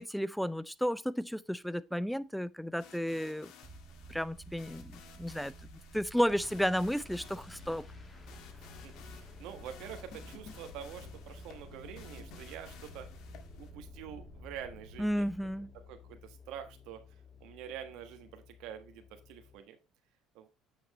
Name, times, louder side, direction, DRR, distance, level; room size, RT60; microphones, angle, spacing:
voice 1, 0.0-3.5 4.1-5.5 5.9-7.8 15.0-15.7, equal, ahead, 0.5 m, -33 dB
sound 1, 2.8-13.7, left 6 dB, 65° left, 1.7 m, -55 dB
sound 2, 3.6-16.9, right 2 dB, 35° right, 2.2 m, -53 dB
sound 3, 6.3-19.6, left 6 dB, 25° left, 2.0 m, -54 dB
voice 2, 8.8-13.1 13.5-15.3 15.7-17.0 17.4-19.8 20.3-20.5, right 9 dB, 75° right, 1.4 m, -46 dB
8.7 x 5.9 x 3.1 m
cardioid pair, 115°, 0 cm